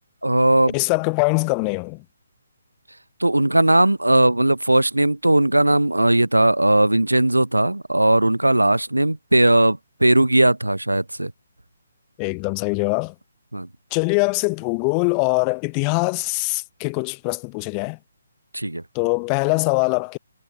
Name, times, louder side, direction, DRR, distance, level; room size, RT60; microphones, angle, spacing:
voice 1, 0.2-0.8 3.2-11.3 13.5-13.7 18.5-18.8, right 1 dB, 80° right, 0.3 m, -18 dB
voice 2, 0.7-2.0 12.2-13.1 13.9-18.0 18.9-20.2, left 40 dB or more, 20° left, 0.4 m, -22 dB
figure-of-eight pair, 135°, 0 cm